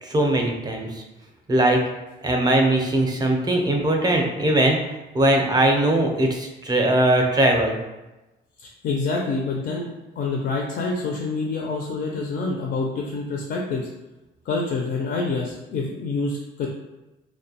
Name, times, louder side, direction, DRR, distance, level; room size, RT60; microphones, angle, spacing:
voice 1, 0.0-1.0 1.5-1.8 2.2-4.9 5.1-7.8, right 1 dB, 20° right, 1 dB, 0.5 m, -20 dB
voice 2, 8.6-9.9 10.2-13.9 14.4-16.7, left 3 dB, 55° left, 0 dB, 0.4 m, -27 dB
2.4 x 2.1 x 2.7 m, 1.0 s
cardioid pair, 90°, 20 cm